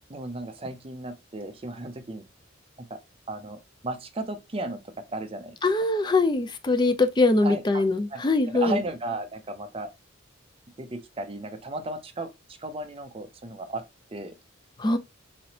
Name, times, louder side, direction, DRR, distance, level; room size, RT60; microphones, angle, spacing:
voice 1, 0.1-2.2 2.9-3.0 3.3-5.6 7.4-7.8 8.1-9.9 10.8-12.3 12.6-13.8 14.1-14.4, right 2 dB, 30° right, 0.6 m, -35 dB
voice 2, 5.6-8.8 14.8-15.0, left 2 dB, 20° left, 0.4 m, -22 dB
4.0 x 3.1 x 2.7 m
head